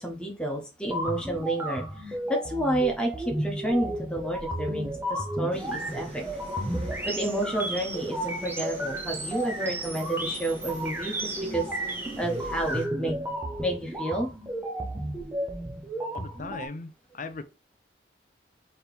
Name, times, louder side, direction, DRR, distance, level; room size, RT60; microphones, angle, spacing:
voice 1, 0.0-6.2 7.0-13.2 13.6-14.3, right 1 dB, 5° left, 1.1 m, -30 dB
sound 1, 0.8-16.7, right 1 dB, 10° right, 0.7 m, -33 dB
sound 2, 5.5-12.9, equal, 30° right, 2.3 m, -43 dB
voice 2, 16.1-17.4, left 3 dB, 45° left, 0.5 m, -38 dB
4.3 x 3.2 x 3.4 m
head